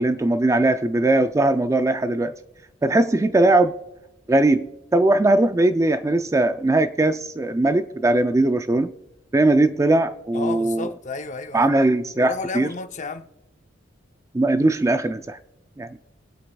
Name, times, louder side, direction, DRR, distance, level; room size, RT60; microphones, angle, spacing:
voice 1, 0.0-2.3 2.8-3.8 4.3-8.9 9.3-10.9 11.5-12.7 14.3-15.4 15.8-16.0, right 2 dB, 15° right, 0.4 m, -20 dB
voice 2, 10.3-11.7 12.2-13.3, left 3 dB, 40° left, 0.7 m, -32 dB
23.0 x 8.5 x 2.3 m
head